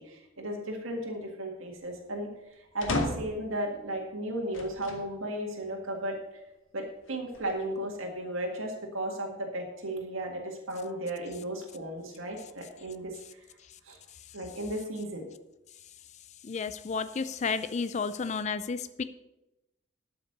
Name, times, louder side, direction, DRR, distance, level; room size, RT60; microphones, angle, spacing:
voice 1, 0.0-2.3 2.7-6.2 6.7-13.4 13.8-14.0 14.3-15.3, right 1 dB, 85° right, 0 dB, 1.9 m, -35 dB
sound 1, 2.8-3.5 4.5-5.1 5.7-5.8 7.1-7.8, left 2 dB, 70° left, 1.6 m, -34 dB
voice 2, 16.4-19.0, left 5 dB, 35° left, 13 dB, 0.4 m, -32 dB
12.5 x 5.8 x 6.7 m, 0.94 s
head